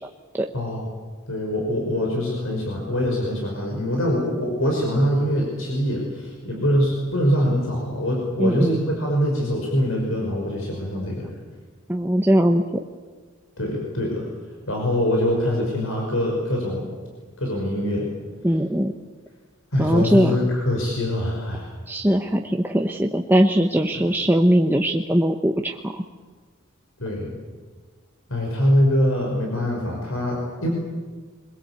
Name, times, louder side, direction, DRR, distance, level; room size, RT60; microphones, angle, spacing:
voice 1, 0.5-0.9 1.3-11.3 13.6-14.3 14.7-16.9 17.4-18.1 19.7-21.7 23.9-24.0 27.0-27.4 28.3-30.7, equal, 85° left, -1 dB, 5.7 m, -23 dB
voice 2, 8.4-8.7 11.9-12.8 18.4-18.9 19.8-20.4 21.9-26.0, equal, 10° right, 2 dB, 0.9 m, -20 dB
24.0 x 21.5 x 8.4 m, 1.4 s
head